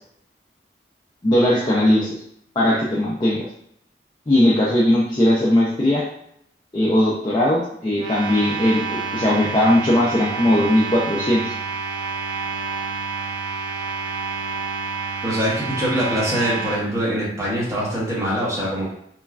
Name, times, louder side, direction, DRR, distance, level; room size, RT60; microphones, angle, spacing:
voice 1, 1.2-2.1 2.6-3.5 4.3-6.1 6.7-11.5, left 1 dB, 25° left, -6 dB, 0.4 m, -19 dB
sound 1, 8.0-16.8, right 5 dB, 90° right, 0.3 m, -29 dB
voice 2, 15.2-18.9, equal, 15° right, -7 dB, 0.9 m, -23 dB
3.0 x 2.2 x 2.3 m, 0.71 s
head